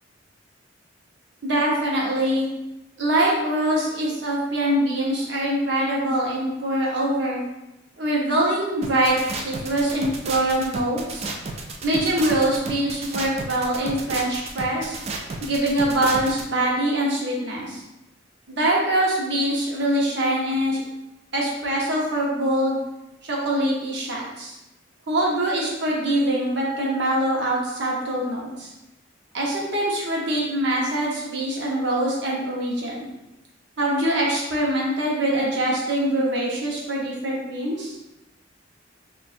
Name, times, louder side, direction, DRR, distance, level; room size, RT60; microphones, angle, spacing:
voice 1, 1.4-2.5 3.0-7.4 8.0-11.3 11.8-15.0 15.4-17.8 18.5-20.8 21.3-22.8 23.3-24.5 25.1-28.7 29.3-33.1 33.8-38.0, right 1 dB, 60° right, -3 dB, 0.9 m, -23 dB
sound 1, 8.8-16.4, right 3 dB, 30° right, 0.3 m, -32 dB
4.3 x 2.5 x 2.5 m, 0.93 s
head